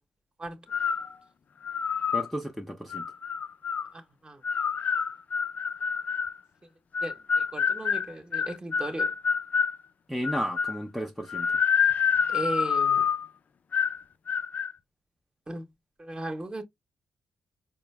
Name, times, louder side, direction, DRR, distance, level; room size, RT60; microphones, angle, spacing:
sound 1, 0.7-1.1 1.6-2.3 2.9-3.9 4.4-6.4 6.9-9.8 10.2-10.8 11.3-13.3 13.7-14.0 14.3-14.7, left 6 dB, 55° left, 0.3 m, -27 dB
voice 1, 2.1-3.1 10.1-11.5, equal, ahead, 0.7 m, -33 dB
voice 2, 3.9-4.4 7.0-9.1 12.3-13.1 15.5-15.7 16.0-16.6, right 1 dB, 30° right, 1.2 m, -36 dB
4.4 x 2.0 x 3.3 m
supercardioid pair, 55°, 3 cm